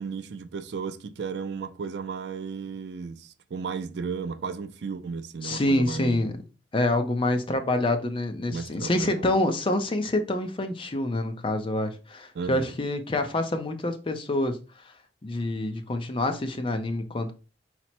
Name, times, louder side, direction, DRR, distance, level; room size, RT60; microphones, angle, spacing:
voice 1, 0.0-6.3 8.5-9.3 12.3-12.7, right 5 dB, 65° right, 0.4 m, -34 dB
voice 2, 5.4-6.3 6.7-14.6 15.2-17.3, left 1 dB, 30° left, 0.5 m, -26 dB
4.2 x 2.0 x 4.2 m
head